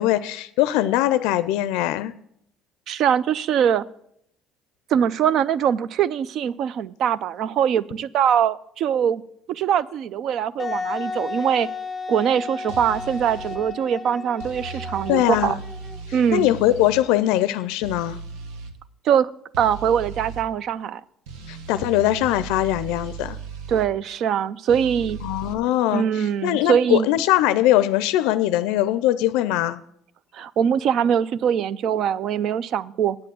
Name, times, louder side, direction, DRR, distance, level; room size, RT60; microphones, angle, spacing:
voice 1, 0.0-2.1 15.1-15.6 16.3-18.2 21.5-23.4 25.2-29.8, left 14 dB, 90° left, 14 dB, 0.4 m, -21 dB
voice 2, 2.9-3.8 4.9-9.2 9.5-11.7 12.1-15.6 16.1-16.5 19.0-19.3 19.6-21.0 23.7-25.2 25.9-27.1 30.3-33.2, right 8 dB, 60° right, 19 dB, 0.4 m, -22 dB
Wind instrument woodwind instrument, 10.6-16.2, left 4 dB, 10° left, 1.2 m, -33 dB
sound 1, 12.7-13.6 14.4-17.0 17.8-18.7 19.5-20.5 21.3-23.9 24.7-25.5, right 5 dB, 90° right, 1.0 m, -37 dB
8.5 x 7.6 x 7.6 m, 0.72 s
cardioid pair, 110°, 0 cm